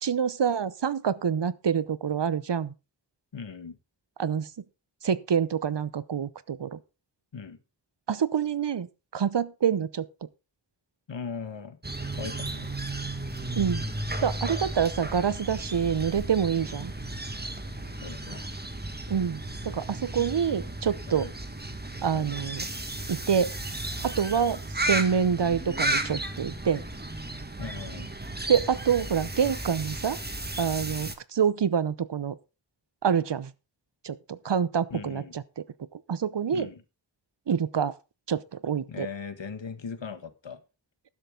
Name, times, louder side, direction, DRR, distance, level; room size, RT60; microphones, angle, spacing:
voice 1, 0.0-2.7 4.2-4.5 5.0-6.8 8.1-8.9 9.1-10.1 13.6-13.9 14.2-16.9 19.1-21.3 22.0-22.6 23.1-23.5 24.0-26.8 28.5-30.2 30.6-32.4 33.0-33.5 34.0-35.6 35.9-36.7 37.5-37.9 38.3-39.1, right 7 dB, 65° right, 0.8 m, -26 dB
voice 2, 3.3-3.8 7.3-7.6 11.1-11.8 12.1-12.7 18.0-18.5 21.1-21.3 22.1-22.3 27.6-28.1 34.9-35.3 36.5-36.8 38.9-40.6, left 5 dB, 75° left, 1.5 m, -39 dB
sound 1, 11.8-31.2, right 1 dB, 20° right, 1.6 m, -34 dB
12.5 x 10.5 x 3.8 m
wide cardioid pair, 70°, 45 cm